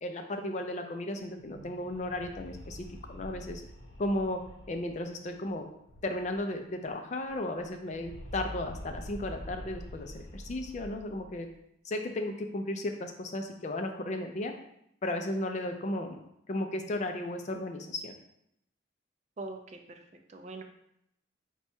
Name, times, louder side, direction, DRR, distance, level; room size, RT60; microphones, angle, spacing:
voice 1, 0.0-3.6 4.0-4.4 4.7-5.7 6.0-11.5 11.8-14.5 15.0-16.2 16.5-18.1, left 1 dB, 35° left, 5 dB, 0.4 m, -35 dB
sound 1, 1.4-6.6 6.8-6.9 7.2-11.5, equal, 70° left, 0.8 m, -46 dB
voice 2, 19.4-20.0 20.3-20.6, right 2 dB, 35° right, 4 dB, 0.4 m, -42 dB
4.3 x 2.3 x 4.3 m, 0.77 s
head